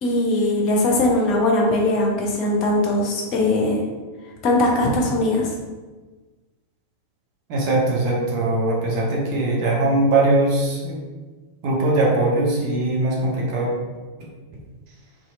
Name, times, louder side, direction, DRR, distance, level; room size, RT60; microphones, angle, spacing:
voice 1, 0.0-3.8 4.4-5.5, left 2 dB, 40° left, -1 dB, 0.7 m, -20 dB
voice 2, 7.5-11.0 11.6-13.7, right 2 dB, 45° right, -4 dB, 0.7 m, -21 dB
2.8 x 2.6 x 2.3 m, 1.3 s
figure-of-eight pair, 90°, 0 cm